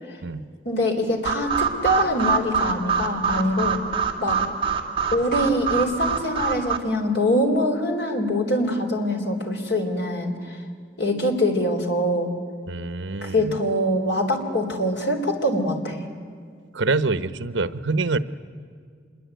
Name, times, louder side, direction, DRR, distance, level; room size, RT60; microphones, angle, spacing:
voice 1, 0.6-3.8 4.2-4.4 5.1-10.6 11.0-12.3 13.2-16.0, left 1 dB, 60° left, 3 dB, 3.9 m, -24 dB
sound 1, 1.2-6.8, right 6 dB, 25° right, 2.2 m, -25 dB
voice 2, 12.7-13.6 16.7-18.2, right 3 dB, 70° right, 15 dB, 1.0 m, -25 dB
26.5 x 22.0 x 9.2 m, 2.1 s
head